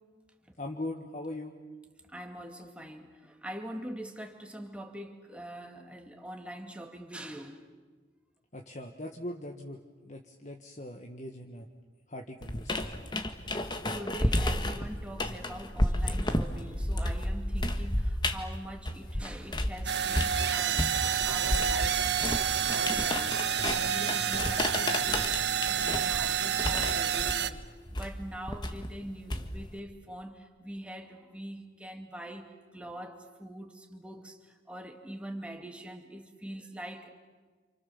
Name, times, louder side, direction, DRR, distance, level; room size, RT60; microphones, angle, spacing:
voice 1, 0.6-1.5 8.5-11.7 12.1-13.0, left 1 dB, 40° left, 1.6 m, -40 dB
voice 2, 2.0-7.6 13.5-22.0 22.7-25.3 25.5-27.6 27.9-37.1, right 1 dB, 5° right, 2.3 m, -43 dB
sound 1, 12.4-19.8 20.1-29.8, left 1 dB, 25° left, 1.5 m, -32 dB
sound 2, 19.9-27.5, right 8 dB, 65° right, 1.0 m, -29 dB
29.5 x 28.0 x 7.2 m
head